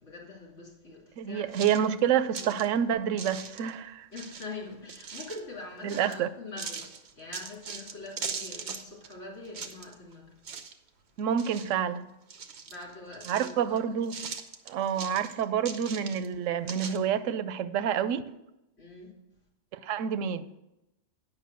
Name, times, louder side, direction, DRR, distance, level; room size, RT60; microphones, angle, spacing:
voice 1, 0.0-1.5 2.5-2.6 4.1-6.8 7.2-10.4 12.7-13.8 18.8-19.1, left 3 dB, 60° left, 3.5 m, -43 dB
voice 2, 1.2-4.1 5.8-6.3 11.2-12.1 13.3-14.2 14.7-18.2 19.7-20.4, right 8 dB, 90° right, 1.0 m, -28 dB
sound 1, 1.5-2.7 3.2-3.8 4.1-5.4 5.9-6.2 6.6-9.1 9.4-10.1 10.4-10.9 11.2-12.0 12.3-13.8 14.0-16.3 16.7-17.0, right 6 dB, 65° right, 1.0 m, -40 dB
9.6 x 5.7 x 6.8 m
omnidirectional pair, 1.3 m